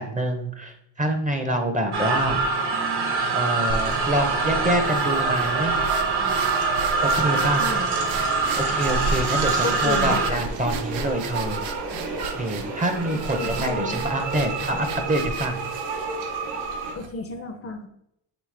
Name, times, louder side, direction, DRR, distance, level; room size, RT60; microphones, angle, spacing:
voice 1, 0.0-2.4 3.3-5.7 7.0-7.6 8.6-11.6 12.3-15.6, right 1 dB, 15° right, 5 dB, 0.5 m, -26 dB
sound 1, 1.9-10.3, right 4 dB, 55° right, 1.0 m, -24 dB
sound 2, 2.5-16.9, right 4 dB, 90° right, 1.0 m, -33 dB
sound 3, 3.7-17.1, right 4 dB, 75° right, 0.6 m, -35 dB
voice 2, 5.4-6.4 7.6-7.9 9.6-10.2 13.0-14.0 16.9-17.9, left 4 dB, 30° left, 6 dB, 0.5 m, -33 dB
5.0 x 3.2 x 3.2 m, 0.77 s
cardioid pair, 95°, 47 cm